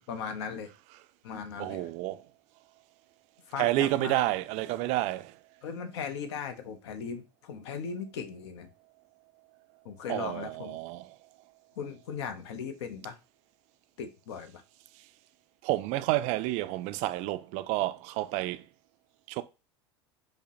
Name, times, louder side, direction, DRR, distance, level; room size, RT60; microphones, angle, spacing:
voice 1, 0.1-0.7 1.2-1.9 3.5-4.2 5.6-8.7 9.8-10.8 11.8-13.2 14.0-14.6, left 6 dB, 70° left, 0.6 m, -38 dB
voice 2, 1.6-2.3 3.6-5.4 10.1-11.2 15.6-18.7 19.3-19.4, right 16 dB, 55° right, 0.4 m, -30 dB
5.0 x 2.1 x 2.8 m
hypercardioid pair, 85°, 14 cm